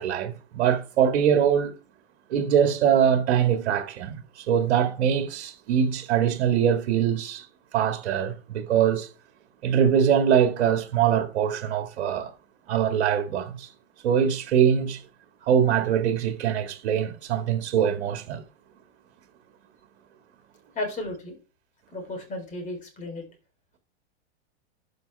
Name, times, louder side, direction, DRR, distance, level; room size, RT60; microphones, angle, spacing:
voice 1, 0.0-1.7 2.3-7.5 7.7-9.1 9.6-12.3 12.7-13.7 14.0-15.0 15.5-18.4, right 8 dB, 65° right, 2.0 m, -23 dB
voice 2, 20.7-21.4 21.9-23.2, left 2 dB, 20° left, 3.7 m, -34 dB
12.5 x 5.3 x 3.4 m
hypercardioid pair, 130°, 33 cm